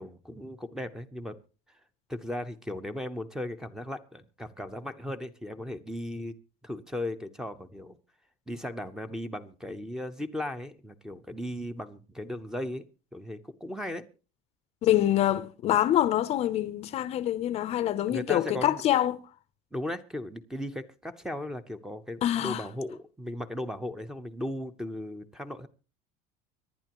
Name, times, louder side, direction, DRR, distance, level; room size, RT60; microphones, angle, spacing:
voice 1, 0.0-1.4 2.1-6.3 6.6-8.0 8.5-12.9 13.1-14.0 18.1-18.8 19.7-25.7, left 1 dB, 5° right, 0.8 m, -37 dB
voice 2, 14.8-19.2 22.2-22.6, left 12 dB, 40° left, 0.6 m, -25 dB
24.5 x 11.0 x 3.0 m
cardioid pair, 155°, 17 cm